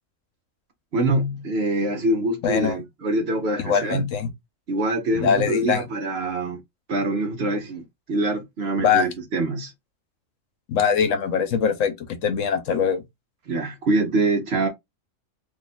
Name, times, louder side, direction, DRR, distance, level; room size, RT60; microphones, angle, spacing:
voice 1, 0.9-4.1 4.7-6.6 6.9-7.8 8.1-9.7 13.5-14.7, right 2 dB, 55° right, 0.9 m, -24 dB
voice 2, 2.4-2.8 3.6-4.3 5.1-5.8 8.8-9.1 10.7-13.0, left 7 dB, 75° left, 1.0 m, -22 dB
2.8 x 2.4 x 4.0 m
omnidirectional pair, 1.4 m